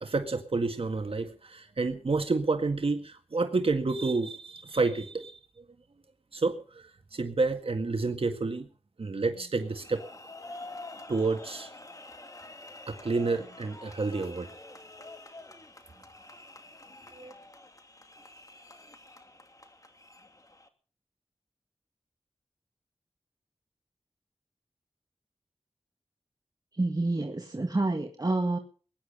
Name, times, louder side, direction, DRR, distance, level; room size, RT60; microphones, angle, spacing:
voice 1, 0.0-5.4 6.3-8.7 9.0-10.0 11.1-11.7 12.9-14.5 17.2-17.3, right 3 dB, 70° right, 6 dB, 1.8 m, -29 dB
sound 1, 9.6-20.7, left 2 dB, 35° left, 2.6 m, -48 dB
voice 2, 26.8-28.6, right 2 dB, 40° right, 4 dB, 1.8 m, -28 dB
21.5 x 10.5 x 5.5 m, 0.41 s
wide cardioid pair, 50°, 10 cm